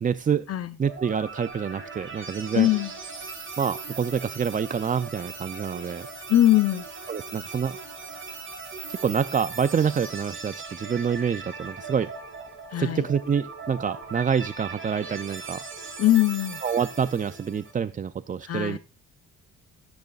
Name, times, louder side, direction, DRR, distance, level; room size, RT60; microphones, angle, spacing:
voice 1, 0.0-0.5 0.8-2.7 3.6-6.1 7.1-7.8 8.9-12.1 12.7-15.6 16.6-18.8, right 7 dB, 25° right, 0.4 m, -27 dB
sound 1, 0.8-17.7, right 4 dB, 45° right, 5.6 m, -39 dB
voice 2, 2.5-2.9 6.3-6.9 12.7-13.0 16.0-16.6 18.4-18.8, left 13 dB, 50° left, 0.7 m, -21 dB
15.5 x 10.5 x 2.4 m
cardioid pair, 90°, 30 cm